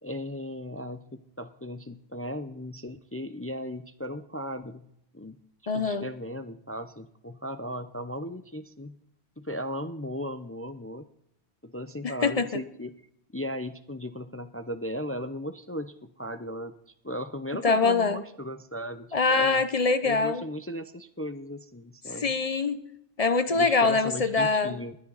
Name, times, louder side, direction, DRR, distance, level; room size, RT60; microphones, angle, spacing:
voice 1, 0.0-4.9 5.1-5.4 5.7-9.0 9.4-11.0 11.6-12.9 13.3-19.6 20.0-22.3 23.5-25.0, equal, 20° left, 10 dB, 0.3 m, -36 dB
voice 2, 5.7-6.1 12.0-12.6 17.6-18.2 19.1-20.4 22.2-22.8 23.2-24.7, left 4 dB, 40° left, 12 dB, 0.7 m, -24 dB
20.0 x 10.5 x 4.0 m, 0.75 s
omnidirectional pair, 1.1 m